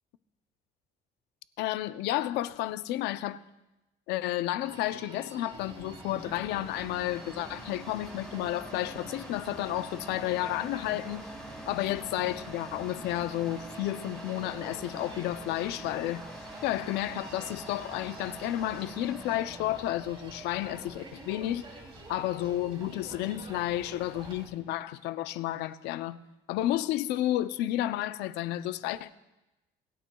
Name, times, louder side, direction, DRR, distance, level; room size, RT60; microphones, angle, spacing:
voice 1, 1.6-3.4 4.1-11.3 11.7-16.2 16.6-21.7 22.1-26.2 26.5-29.1, left 14 dB, 90° left, 0.5 m, -31 dB
Human voice, 4.6-24.5, right 3 dB, 30° right, 2.8 m, -48 dB
sound 1, 5.5-24.5, equal, 5° left, 3.6 m, -46 dB
25.0 x 9.1 x 2.3 m
cardioid pair, 110°, 17 cm